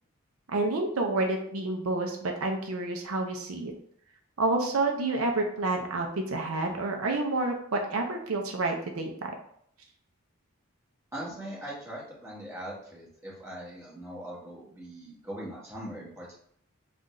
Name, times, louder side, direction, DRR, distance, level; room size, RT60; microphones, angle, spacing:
voice 1, 0.5-3.7 4.4-9.3, right 2 dB, 80° right, 3 dB, 0.6 m, -29 dB
voice 2, 11.1-16.4, right 1 dB, 15° right, -6 dB, 1.4 m, -41 dB
3.8 x 2.5 x 4.2 m, 0.66 s
head